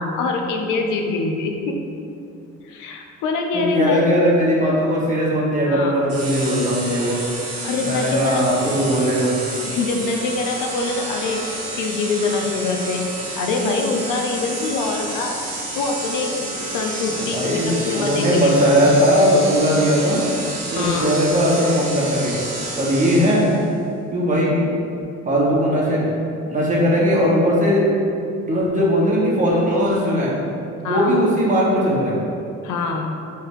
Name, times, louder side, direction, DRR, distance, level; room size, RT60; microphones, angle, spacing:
voice 1, 0.0-1.8 2.6-4.3 5.7-6.0 7.6-8.4 9.6-11.5 11.8-13.1 13.4-15.4 15.7-18.5 20.8-21.1 30.8-31.2 32.6-33.2, left 3 dB, 90° left, 2 dB, 0.6 m, -24 dB
voice 2, 3.5-7.2 7.8-9.4 17.2-20.2 20.7-22.4 22.8-23.5 24.1-24.7 25.2-26.1 26.4-27.9 28.4-30.3 30.8-32.1, equal, 25° right, -6 dB, 1.3 m, -19 dB
sound 1, 6.1-23.7, right 1 dB, 50° right, 1.1 m, -30 dB
4.6 x 3.4 x 3.1 m, 2.6 s
cardioid pair, 90°, 30 cm